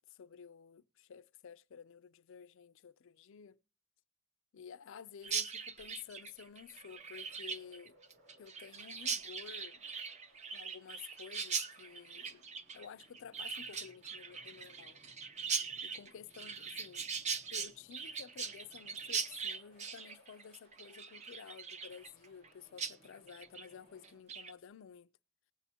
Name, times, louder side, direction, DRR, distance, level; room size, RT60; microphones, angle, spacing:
voice 1, 0.0-3.6 4.5-8.0 8.4-9.8 10.5-12.4 12.7-15.0 15.8-17.1 17.5-25.1, left 7 dB, 65° left, 0.4 m, -52 dB
Chirp tweet, 5.2-22.5 22.8-22.9 23.3-23.7 24.0-24.5, right 5 dB, 30° right, 0.5 m, -41 dB
sound 1, 5.9-24.2, equal, 45° right, 3.5 m, -67 dB
20.0 x 8.3 x 2.8 m
head